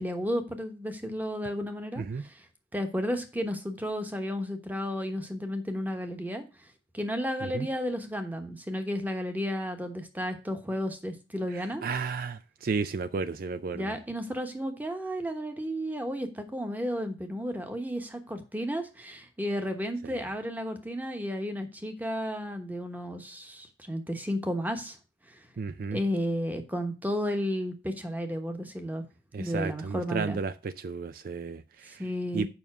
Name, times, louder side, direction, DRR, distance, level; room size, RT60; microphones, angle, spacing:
voice 1, 0.0-2.4 2.7-6.4 6.9-11.8 13.7-25.0 25.3-25.4 25.9-29.0 29.4-30.4 31.9-32.5, equal, 10° right, 1.1 m, -33 dB
voice 2, 11.8-13.9 25.6-26.0 29.3-32.0 32.3-32.5, right 4 dB, 50° right, 0.4 m, -33 dB
7.1 x 5.5 x 6.0 m
head